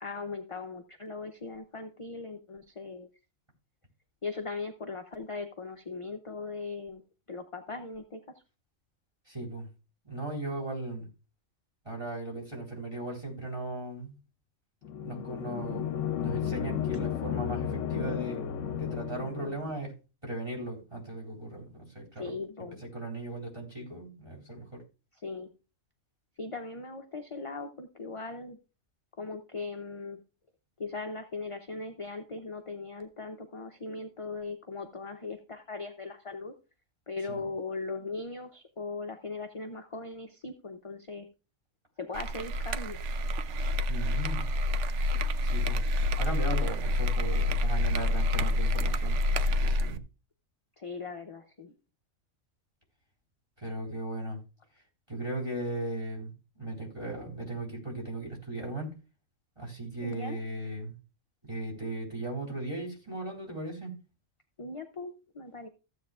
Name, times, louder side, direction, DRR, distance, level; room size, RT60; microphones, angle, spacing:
voice 1, 0.0-3.1 4.2-7.0 7.3-8.2 22.2-22.8 25.1-25.5 26.4-28.6 29.2-30.2 30.8-36.5 37.1-41.3 42.0-43.0 50.8-51.7 60.0-60.4 64.6-65.7, left 3 dB, 30° left, 6 dB, 0.6 m, -39 dB
voice 2, 9.3-9.7 10.1-11.1 11.9-14.1 15.0-19.9 20.2-22.3 22.9-24.8 37.3-37.4 43.9-44.4 45.4-45.8 46.2-50.0 53.6-54.4 55.1-56.3 56.6-58.9 59.6-61.0 61.5-63.9, right 2 dB, 25° right, 0 dB, 3.8 m, -37 dB
sound 1, 14.8-19.8, left 9 dB, 70° left, 1.0 m, -33 dB
sound 2, 42.1-50.0, left 1 dB, 70° right, 0.9 m, -28 dB
15.0 x 8.1 x 2.4 m, 0.32 s
omnidirectional pair, 1.3 m